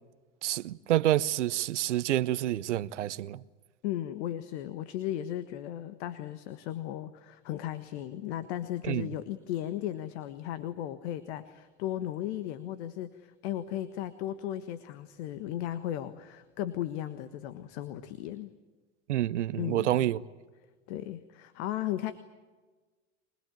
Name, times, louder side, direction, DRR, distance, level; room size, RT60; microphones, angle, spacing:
voice 1, 0.4-3.4 8.8-9.1 19.1-20.2, right 13 dB, 85° right, 0.7 m, -28 dB
voice 2, 3.8-18.5 19.6-20.0 20.9-22.1, left 12 dB, 70° left, 1.5 m, -36 dB
25.0 x 20.5 x 9.1 m
hypercardioid pair, 90°, 35 cm